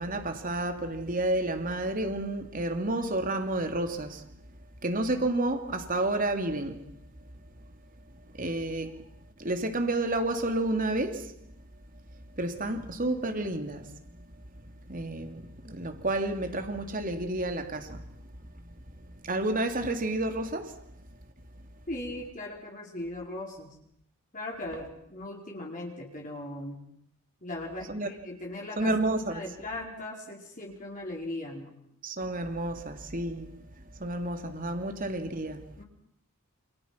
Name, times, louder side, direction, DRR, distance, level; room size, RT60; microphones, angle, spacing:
voice 1, 0.0-4.3 4.8-7.0 8.3-9.0 9.4-11.3 12.4-14.3 14.9-18.2 18.5-20.8 27.9-28.1 28.8-29.4 32.0-33.6 33.9-35.7, right 1 dB, 40° right, 3.1 m, -31 dB
voice 2, 21.9-23.7 24.3-26.8 27.4-28.9 29.3-31.7 35.8-35.9, left 1 dB, 35° left, 4.8 m, -38 dB
28.5 x 28.5 x 6.0 m
head